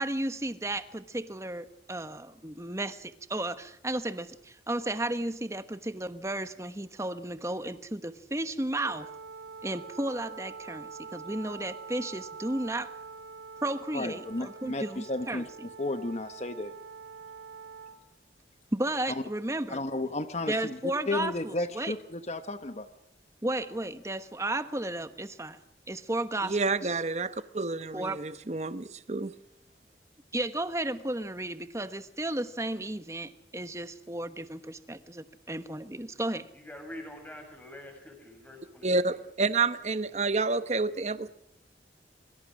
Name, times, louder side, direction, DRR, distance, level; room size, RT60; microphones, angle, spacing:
voice 1, 0.0-9.1 9.6-12.9 13.6-15.5 18.7-19.8 20.4-21.9 23.4-25.6 25.9-27.0 27.9-28.2 30.3-36.5, right 1 dB, 15° right, 11 dB, 1.2 m, -33 dB
Wind instrument woodwind instrument, 8.8-18.0, right 5 dB, 55° right, 3.1 m, -45 dB
voice 2, 13.9-16.7 19.7-20.8 21.1-22.9, left 2 dB, 40° left, 9 dB, 1.0 m, -33 dB
voice 3, 26.4-29.3 38.8-41.3, right 3 dB, 40° right, 13 dB, 0.9 m, -29 dB
voice 4, 36.5-39.2, left 1 dB, 10° left, 4 dB, 6.4 m, -46 dB
26.0 x 23.5 x 6.3 m, 0.75 s
head